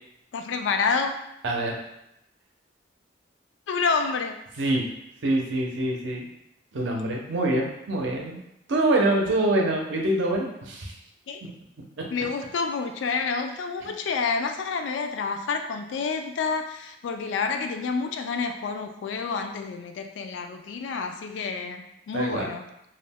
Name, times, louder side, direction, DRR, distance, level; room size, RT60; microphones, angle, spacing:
voice 1, 0.3-1.2 3.7-4.4 11.3-11.4 12.1-22.7, left 5 dB, 80° left, 6 dB, 0.3 m, -28 dB
voice 2, 5.2-6.3 6.7-8.4 8.7-10.9 22.1-22.5, right 1 dB, 85° right, -1 dB, 0.6 m, -25 dB
2.4 x 2.1 x 3.4 m, 0.82 s
head